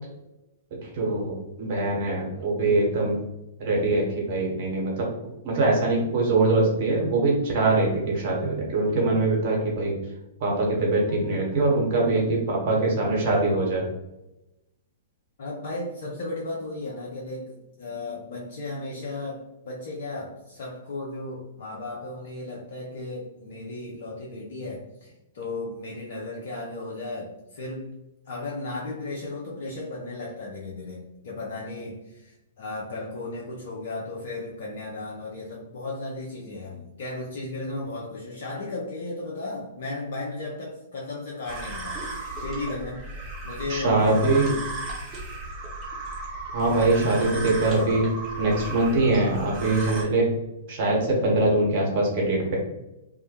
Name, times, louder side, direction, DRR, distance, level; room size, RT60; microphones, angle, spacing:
voice 1, 0.9-3.2 3.6-5.1 5.4-10.0 10.4-13.9 43.7-44.5 46.5-48.0 48.4-50.3 50.7-52.6, right 2 dB, 45° right, -2 dB, 1.0 m, -23 dB
voice 2, 11.0-12.5 15.4-27.9 28.3-44.0 47.3-47.5, left 2 dB, 55° left, -4 dB, 0.5 m, -35 dB
sound 1, 41.5-50.0, right 2 dB, 20° right, 0.9 m, -35 dB
2.3 x 2.1 x 2.9 m, 0.94 s
figure-of-eight pair, 110°, 0 cm